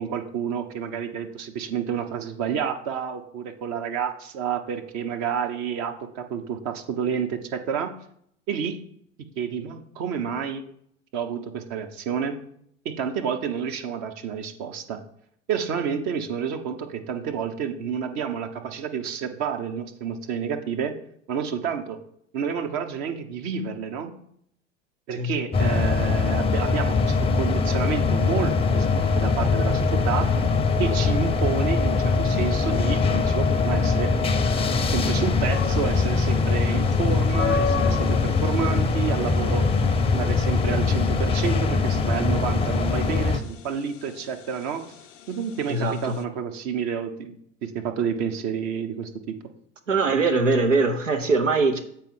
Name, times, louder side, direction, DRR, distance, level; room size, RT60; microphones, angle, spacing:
voice 1, 0.0-8.0 8.5-8.8 9.4-10.6 11.1-12.4 12.8-15.0 15.5-20.9 21.3-22.0 22.3-24.2 25.1-30.5 30.8-34.1 34.9-39.7 40.1-44.8 45.3-47.3 47.6-49.4, right 7 dB, 50° right, 6 dB, 1.0 m, -29 dB
sound 1, 25.5-43.4, left 4 dB, 15° left, 0.6 m, -22 dB
sound 2, 35.5-46.2, left 6 dB, 80° left, 0.6 m, -35 dB
voice 2, 45.7-46.2 49.9-51.8, right 3 dB, 85° right, 6 dB, 0.8 m, -22 dB
7.5 x 4.4 x 5.5 m, 0.68 s
figure-of-eight pair, 70°, 37 cm